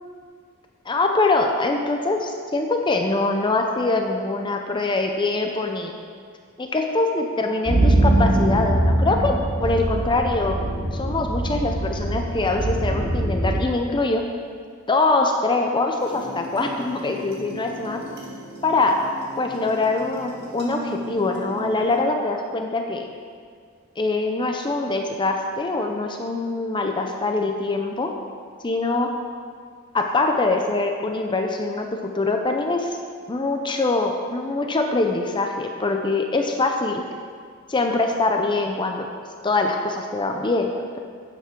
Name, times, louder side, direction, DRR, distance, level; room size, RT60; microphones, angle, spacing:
voice 1, 0.9-5.9 6.6-10.6 10.9-14.2 14.9-18.0 18.6-19.0 19.4-23.1 24.0-28.1 28.6-29.1 29.9-33.0 33.3-37.0 37.7-39.1 39.4-41.0, left 3 dB, 20° left, 3 dB, 0.6 m, -23 dB
sound 1, 7.7-13.6, right 1 dB, 30° right, 2.8 m, -22 dB
sound 2, 16.0-22.0, equal, 50° right, 2.1 m, -37 dB
12.0 x 8.2 x 3.8 m, 2.1 s
head